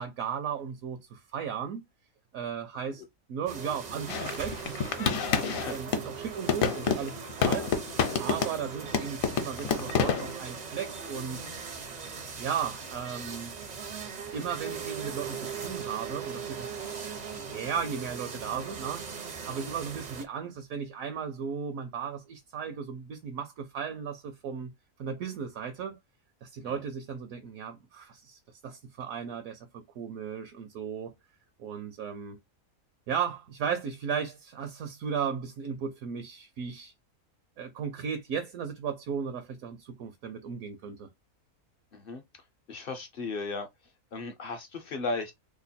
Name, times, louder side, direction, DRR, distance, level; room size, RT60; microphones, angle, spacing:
voice 1, 0.0-1.8 2.3-3.0 3.3-7.7 8.2-11.4 12.4-13.5 14.3-16.7 17.3-19.0 19.4-24.7 25.0-26.0 26.4-31.1 31.6-32.4 33.1-36.9 37.6-41.1, right 7 dB, 75° right, 1.0 m, -36 dB
sound 1, 3.5-20.2, right 6 dB, 50° right, 0.5 m, -39 dB
sound 2, 4.1-6.1 6.5-8.7 8.9-10.3, left 6 dB, 70° left, 1.1 m, -28 dB
voice 2, 41.9-42.2 42.7-43.7 44.1-45.3, left 3 dB, 55° left, 0.6 m, -35 dB
3.0 x 2.2 x 4.1 m
omnidirectional pair, 1.5 m